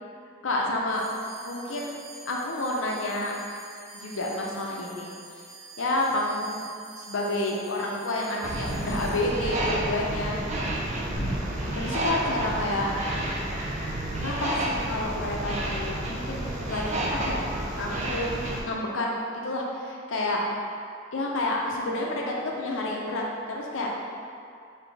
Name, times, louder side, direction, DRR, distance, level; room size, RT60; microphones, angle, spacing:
voice 1, 0.4-1.0 1.4-1.9 2.3-3.3 3.9-5.1 5.8-6.6 7.0-10.4 11.7-12.9 14.2-17.5 17.8-20.4 21.1-24.1, left 1 dB, 75° left, -2 dB, 0.6 m, -29 dB
sound 1, 0.9-11.5, right 3 dB, 15° left, 1.3 m, -48 dB
sound 2, 8.4-18.6, right 1 dB, 35° right, 0.4 m, -30 dB
sound 3, 11.2-13.7, equal, 40° left, 1.1 m, -37 dB
4.1 x 2.7 x 3.3 m, 2.3 s
head